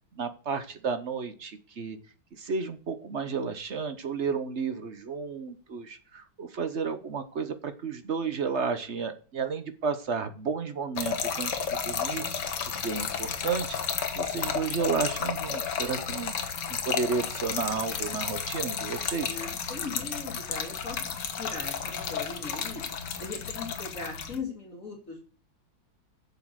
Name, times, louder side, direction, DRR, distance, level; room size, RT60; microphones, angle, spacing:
voice 1, 0.1-2.0 2.3-12.2 12.8-19.4, right 5 dB, 45° right, 10 dB, 0.9 m, -32 dB
Trickle dribble / Fill (with liquid), 11.0-24.4, left 6 dB, 60° left, 1.8 m, -32 dB
voice 2, 19.3-21.0 21.3-22.8 23.2-25.2, left 4 dB, 40° left, 1 dB, 2.5 m, -39 dB
7.6 x 7.3 x 7.8 m, 0.38 s
omnidirectional pair, 2.2 m